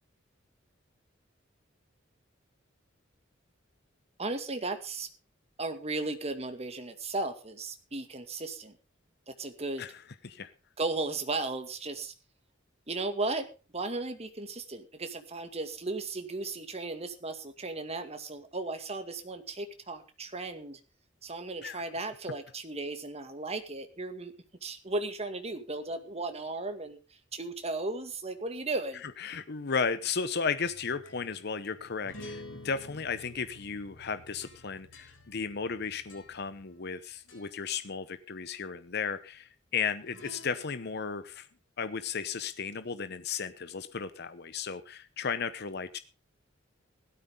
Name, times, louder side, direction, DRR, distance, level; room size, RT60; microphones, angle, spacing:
voice 1, 4.2-5.1 5.6-8.8 9.3-9.8 10.8-12.1 12.9-20.8 21.2-24.3 24.6-27.0 27.3-29.0, right 3 dB, 35° right, 7 dB, 2.2 m, -35 dB
voice 2, 29.2-41.5 41.8-46.0, left 5 dB, 60° left, 12 dB, 0.9 m, -34 dB
sound 1, 30.6-37.0 37.3-37.7 40.0-41.0, left 1 dB, 90° left, 7.4 m, -50 dB
16.5 x 13.0 x 3.7 m, 0.32 s
head